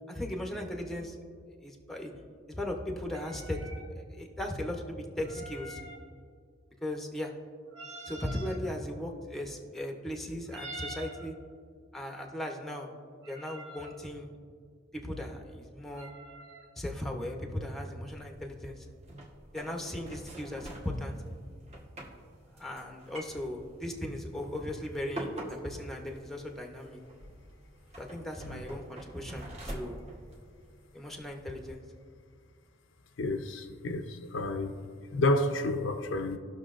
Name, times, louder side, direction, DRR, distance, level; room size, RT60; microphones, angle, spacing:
voice 1, 0.1-1.2 1.5-2.1 2.5-3.6 3.9-5.8 6.8-7.3 8.0-11.3 11.9-12.9 13.3-14.3 14.9-16.1 16.8-18.9 19.5-21.2 22.5-27.0 28.0-30.0 30.9-31.8, left 1 dB, ahead, 0.8 m, -37 dB
sound 1, 3.1-3.9 5.2-6.0 7.7-8.6 10.5-11.3 13.2-14.0 15.9-16.7, right 1 dB, 65° right, 1.4 m, -45 dB
sound 2, 18.1-31.7, right 1 dB, 35° right, 1.2 m, -46 dB
voice 2, 33.2-34.8 35.1-36.4, left 2 dB, 65° left, 0.6 m, -30 dB
17.5 x 6.1 x 2.5 m
head